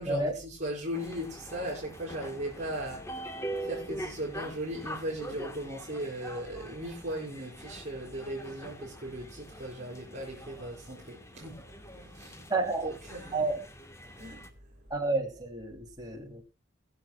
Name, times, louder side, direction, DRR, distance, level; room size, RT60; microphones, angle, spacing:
voice 1, 0.0-12.5 12.8-13.5 14.0-14.9, right 1 dB, 35° right, 5.9 m, -38 dB
sound 1, 0.9-14.5, right 1 dB, 15° left, 1.3 m, -43 dB
voice 2, 12.5-12.9 13.3-13.5 14.9-16.5, right 2 dB, 20° right, 2.8 m, -30 dB
22.5 x 7.7 x 2.3 m
head